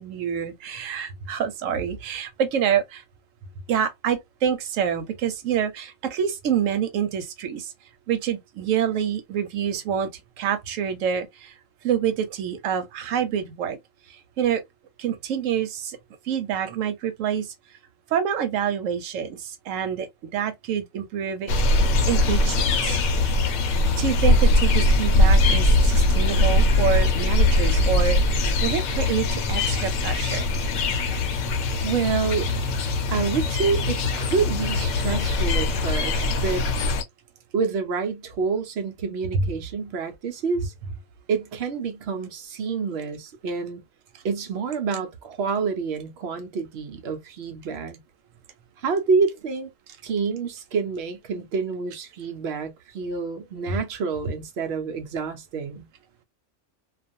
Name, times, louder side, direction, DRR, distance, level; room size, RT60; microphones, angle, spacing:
voice 1, 0.0-3.0 3.7-7.7 8.1-10.1 10.4-11.5 11.8-13.8 14.4-14.6 15.0-16.0 16.3-17.5 18.1-20.1 20.3-21.5 22.1-23.0 24.0-30.5 39.3-39.4 53.7-53.8, right 8 dB, 85° right, 1.0 m, -27 dB
sound 1, 21.5-37.0, left 2 dB, 75° left, 0.9 m, -21 dB
voice 2, 31.8-32.5 33.1-36.6 37.5-40.7 41.3-43.8 44.2-48.0 48.8-49.7 50.0-55.9, right 5 dB, 65° right, 0.8 m, -27 dB
2.4 x 2.3 x 2.5 m
omnidirectional pair, 1.3 m